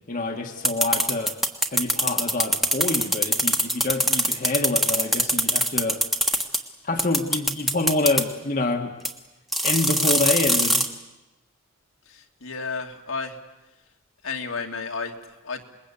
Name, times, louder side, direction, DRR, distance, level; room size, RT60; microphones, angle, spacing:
voice 1, 0.1-1.4 1.7-6.0 6.8-8.9 9.6-10.8, left 2 dB, 40° left, 3 dB, 1.5 m, -26 dB
sound 1, 0.6-6.6 7.0-8.2 9.0-9.1 9.5-10.9, equal, ahead, 1.5 m, -22 dB
voice 2, 12.1-13.4 14.2-15.6, left 4 dB, 70° left, 3 dB, 2.3 m, -32 dB
27.0 x 21.5 x 8.5 m, 1.0 s
head